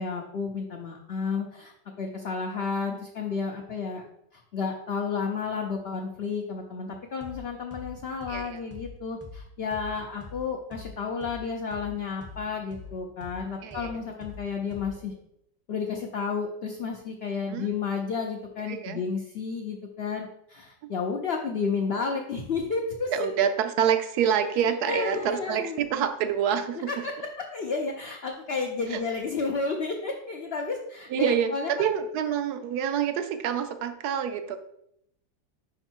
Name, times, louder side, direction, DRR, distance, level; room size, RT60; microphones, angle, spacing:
voice 1, 0.0-4.0 4.3-15.1 15.7-23.1 24.9-25.8 26.9-27.1 27.5-31.9, left 5 dB, 65° left, 2 dB, 0.6 m, -31 dB
sound 1, 7.2-7.4 7.7-11.4 11.7-15.1, left 3 dB, 15° left, 0.5 m, -44 dB
voice 2, 8.3-8.6 13.6-14.0 17.5-17.7 18.7-19.0 23.1-26.9 28.9-29.0 31.1-34.6, right 8 dB, 70° right, 9 dB, 1.1 m, -27 dB
5.3 x 4.9 x 4.4 m, 0.76 s
omnidirectional pair, 1.9 m